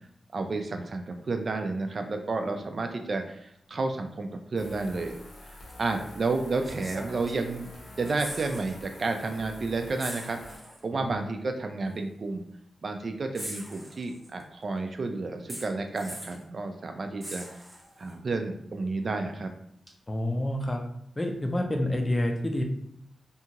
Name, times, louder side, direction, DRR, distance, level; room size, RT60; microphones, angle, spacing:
voice 1, 0.3-5.2 5.5-7.7 8.0-10.4 10.8-12.4 12.8-17.5 18.0-19.5, right 3 dB, 50° right, 5 dB, 0.3 m, -31 dB
sound 1, 4.6-10.6, left 1 dB, 75° left, 0.8 m, -47 dB
sound 2, 5.7-5.8 6.6-7.7 7.9-8.8 9.1-9.2 10.0-10.8 11.9-12.0 13.3-14.4 15.5-16.4 17.2-18.1 19.9-20.0, right 1 dB, 15° right, 0.9 m, -41 dB
voice 2, 20.1-20.8 21.2-22.6, left 1 dB, 20° left, 3 dB, 0.5 m, -28 dB
2.7 x 2.3 x 2.8 m, 0.73 s
cardioid pair, 85°, 0 cm